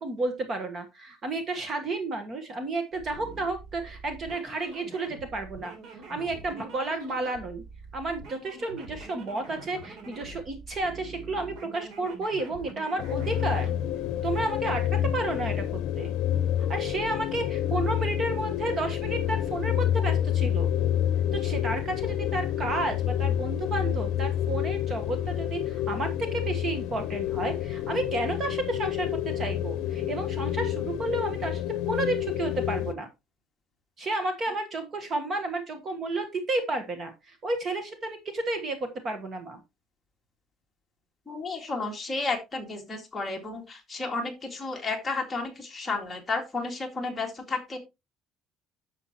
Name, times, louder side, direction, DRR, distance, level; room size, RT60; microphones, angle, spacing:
voice 1, 0.0-7.6 7.9-13.7 14.2-16.1 16.6-20.7 21.3-33.1 34.0-39.6, right 2 dB, 25° right, 7 dB, 1.3 m, -32 dB
sound 1, 2.9-13.7, right 3 dB, 60° right, 3.5 m, -45 dB
sound 2, 13.0-32.9, left 11 dB, 65° left, 0.7 m, -28 dB
voice 2, 41.3-47.8, left 3 dB, 10° left, 0 dB, 2.1 m, -32 dB
9.9 x 7.0 x 3.0 m, 0.23 s
cardioid pair, 170°, 0 cm